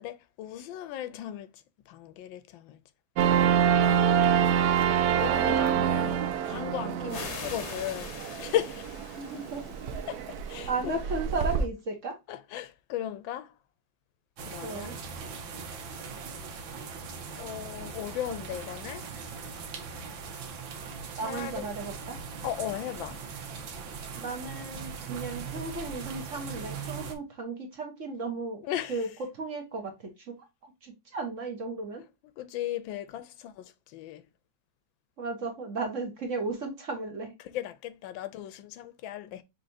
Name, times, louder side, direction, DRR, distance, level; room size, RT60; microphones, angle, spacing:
voice 1, 0.0-2.8 5.2-8.1 8.4-8.9 10.1-11.0 12.3-13.5 14.5-15.0 17.4-19.1 21.2-21.7 22.4-23.2 28.6-29.0 32.4-34.2 37.4-39.4, left 12 dB, 85° left, 1.4 m, -36 dB
sound 1, 3.2-11.7, right 8 dB, 70° right, 1.0 m, -26 dB
voice 2, 5.3-5.9 7.0-7.4 9.1-9.6 10.7-12.2 14.6-15.0 21.2-22.2 24.1-28.6 28.9-29.1 29.3-30.3 30.6-32.0 35.2-37.3, right 3 dB, 45° right, 1.3 m, -35 dB
sound 2, 7.1-10.8, left 5 dB, 50° left, 0.9 m, -43 dB
sound 3, 14.4-27.1, right 5 dB, 90° right, 1.7 m, -40 dB
5.6 x 3.3 x 2.6 m
omnidirectional pair, 2.1 m